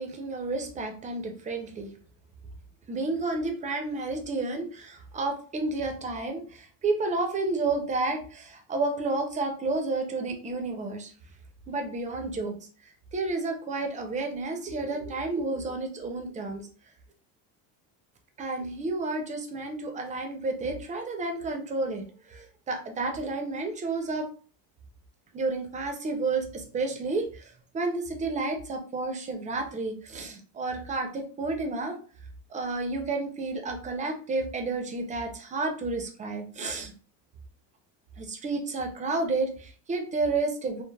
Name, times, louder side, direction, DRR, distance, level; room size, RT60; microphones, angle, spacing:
voice 1, 0.0-1.9 2.9-11.1 11.7-12.5 13.1-16.7 18.4-24.3 25.3-32.0 32.5-36.9 38.2-40.8, right 3 dB, 15° right, 4 dB, 0.4 m, -31 dB
3.2 x 2.0 x 2.2 m, 0.40 s
cardioid pair, 120°, 46 cm